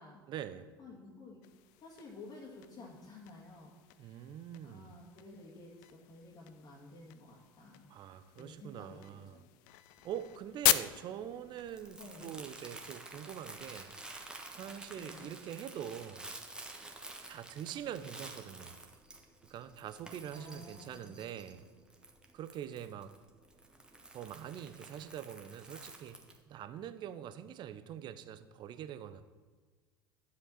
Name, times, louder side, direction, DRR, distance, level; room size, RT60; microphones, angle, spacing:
voice 1, 0.3-0.7 4.0-5.0 7.9-9.4 10.0-14.0 14.5-16.3 17.3-18.7 19.5-21.7 22.3-23.1 24.1-26.2 26.5-29.2, right 10 dB, 35° right, 12 dB, 0.7 m, -44 dB
voice 2, 0.8-1.4 1.8-4.2 4.6-7.9 8.4-9.4 12.0-12.3 15.0-15.3 20.3-21.2, left 2 dB, 30° left, -4 dB, 2.1 m, -52 dB
sound 1, 1.4-13.2, left 15 dB, 50° left, 0.4 m, -39 dB
Crumpling crinkling, 10.0-26.4, right 2 dB, 5° right, 1.4 m, -51 dB
11.0 x 7.5 x 4.2 m, 1.5 s
figure-of-eight pair, 75°, 13 cm